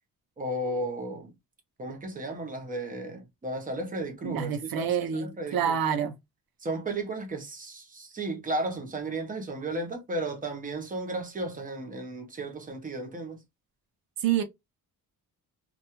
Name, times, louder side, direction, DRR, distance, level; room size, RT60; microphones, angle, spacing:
voice 1, 0.4-1.3 1.8-6.1 6.6-13.4, right 2 dB, 25° right, 0.7 m, -34 dB
voice 2, 4.2-6.2 14.2-14.4, right 8 dB, 75° right, 0.6 m, -27 dB
2.3 x 2.3 x 2.8 m
wide cardioid pair, 170°, 36 cm